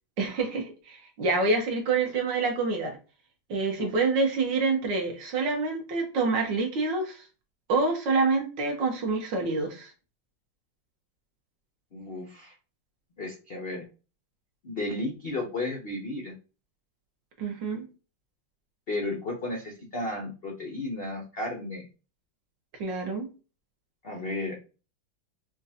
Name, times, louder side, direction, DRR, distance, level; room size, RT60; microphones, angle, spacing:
voice 1, 0.2-3.0 3.5-7.2 7.7-9.9 17.4-17.8 22.8-23.3, right 3 dB, 70° right, 2 dB, 1.6 m, -27 dB
voice 2, 11.9-12.5 13.2-13.9 14.6-16.3 18.9-21.9 24.0-24.6, left 2 dB, 70° left, 1 dB, 0.5 m, -33 dB
5.1 x 2.3 x 2.7 m, 0.34 s
omnidirectional pair, 2.1 m